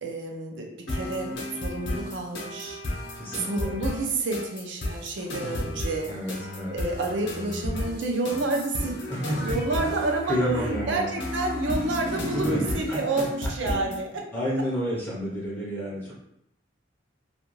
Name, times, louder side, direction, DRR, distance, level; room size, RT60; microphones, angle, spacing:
voice 1, 0.0-2.8 3.3-6.1 6.7-9.0 9.3-10.4 10.7-14.2, right 2 dB, 65° right, 2 dB, 0.5 m, -29 dB
sound 1, 0.9-14.0, left 1 dB, 60° left, 0.7 m, -33 dB
voice 2, 3.1-3.7 6.1-6.7 9.1-9.5 9.8-9.9 10.3-11.1 12.3-12.6 12.9-13.5 13.9-14.0 14.3-16.1, equal, 10° left, -5 dB, 0.5 m, -30 dB
2.4 x 2.2 x 3.0 m, 0.79 s
head